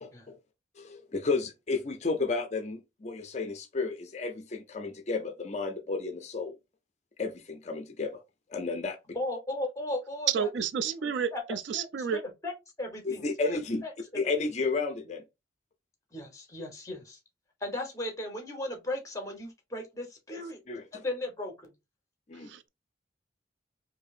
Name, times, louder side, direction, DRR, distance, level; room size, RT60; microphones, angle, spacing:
voice 1, 0.0-0.4 0.8-6.6 7.2-8.2 8.5-9.0 13.0-13.8 14.1-15.2 20.7-21.0 22.3-22.5, left 3 dB, 35° left, 0.4 m, -32 dB
voice 2, 9.1-10.5 10.8-11.4 11.7-12.5 12.8-14.2 16.1-17.2 17.6-20.6 20.9-21.7, left 1 dB, 15° left, 1.0 m, -37 dB
voice 3, 10.3-12.2 22.5-22.7, right 7 dB, 75° right, 0.4 m, -30 dB
4.5 x 2.7 x 2.4 m
head